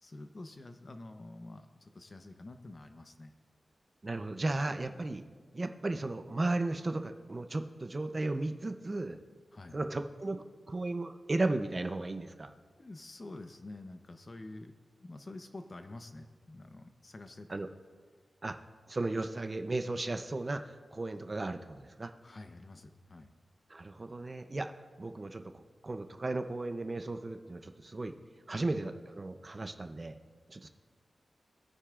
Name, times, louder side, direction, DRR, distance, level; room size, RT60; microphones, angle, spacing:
voice 1, 0.0-3.3 4.9-5.0 9.5-9.8 12.8-14.7 15.0-17.6 22.2-23.3, left 2 dB, 40° left, 7 dB, 0.8 m, -48 dB
voice 2, 4.0-5.2 5.5-9.2 9.7-12.5 17.5-17.7 18.4-18.6 18.9-22.1 23.7-24.7 25.0-28.1 28.5-30.2 30.5-30.7, right 2 dB, 35° right, 7 dB, 0.6 m, -35 dB
21.0 x 9.7 x 2.5 m, 1.5 s
wide cardioid pair, 85°, 0 cm